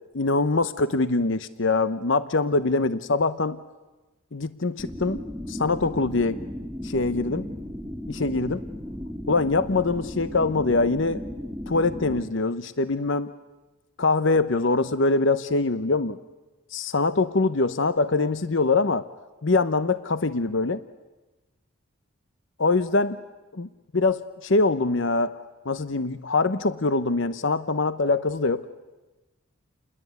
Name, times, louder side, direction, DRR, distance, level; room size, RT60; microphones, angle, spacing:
voice 1, 0.1-3.6 4.3-5.2 5.5-6.4 6.8-7.5 8.1-8.6 9.3-11.2 11.7-13.3 14.0-16.2 16.7-19.1 19.4-20.8 22.6-23.2 23.5-28.7, left 3 dB, 60° left, 13 dB, 0.9 m, -23 dB
sound 1, 4.8-12.2, equal, 5° right, 2.0 m, -35 dB
29.5 x 21.0 x 9.5 m, 1.2 s
head